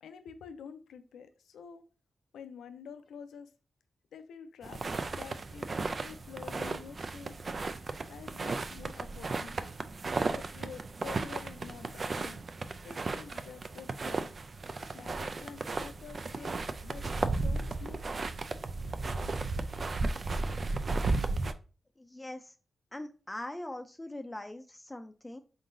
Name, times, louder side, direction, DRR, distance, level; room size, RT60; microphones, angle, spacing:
voice 1, 0.0-1.8 2.3-3.5 4.1-4.8 5.1-7.4 8.1-9.7 10.3-12.5 12.8-14.3 14.9-16.5 16.8-17.1 17.4-18.3, left 7 dB, 90° left, 9 dB, 0.4 m, -48 dB
sound 1, 4.6-21.5, right 3 dB, 55° right, 0.4 m, -35 dB
voice 2, 22.0-22.5 22.9-25.4, left 1 dB, 20° left, 7 dB, 0.4 m, -42 dB
3.8 x 3.7 x 2.6 m, 0.36 s
supercardioid pair, 45°, 0 cm